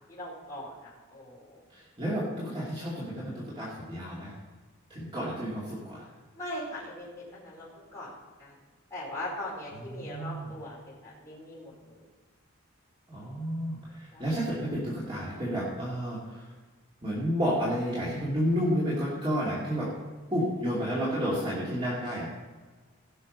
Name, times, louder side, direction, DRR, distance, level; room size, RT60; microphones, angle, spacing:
voice 1, 0.1-1.6 6.3-7.1 7.3-7.7 7.9-8.1 8.4-8.5 8.9-10.8 11.0-12.0 14.1-14.3, left 1 dB, 15° left, -8 dB, 4.6 m, -40 dB
voice 2, 1.7-4.3 4.9-6.1 9.7-10.5 13.1-16.4 17.0-19.9 20.3-22.4, equal, 25° right, -7 dB, 2.6 m, -31 dB
16.5 x 6.6 x 5.3 m, 1.4 s
head